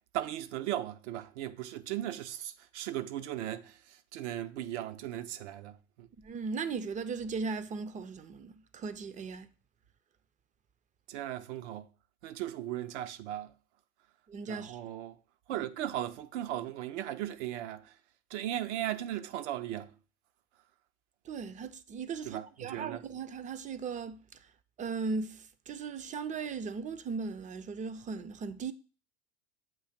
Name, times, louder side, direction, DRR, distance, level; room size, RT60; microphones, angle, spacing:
voice 1, 0.1-6.1 11.1-11.9 12.2-13.5 14.5-15.2 15.5-17.9 18.3-19.9 22.2-23.0, right 12 dB, 70° right, 0.7 m, -37 dB
voice 2, 6.2-9.5 14.3-14.8 15.5-15.6 21.3-24.2 24.8-28.7, right 5 dB, 20° right, 0.5 m, -37 dB
7.6 x 2.8 x 5.7 m
hypercardioid pair, 90°, 37 cm